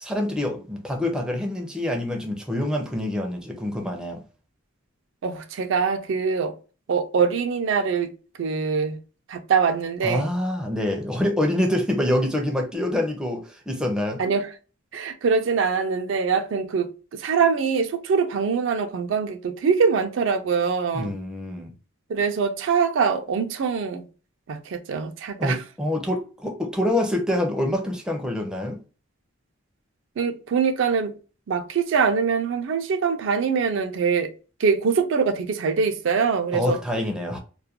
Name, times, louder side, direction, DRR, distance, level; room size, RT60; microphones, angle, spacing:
voice 1, 0.0-4.2 10.0-14.2 20.9-21.7 25.4-28.8 36.5-37.4, left 1 dB, 5° right, 0.4 m, -26 dB
voice 2, 5.2-6.5 6.9-8.1 8.4-9.0 9.3-10.3 14.2-14.5 14.9-21.1 22.1-24.0 24.5-25.6 30.2-31.1 31.5-34.3 34.6-36.8, right 5 dB, 65° right, 0.4 m, -23 dB
2.3 x 2.1 x 2.7 m
head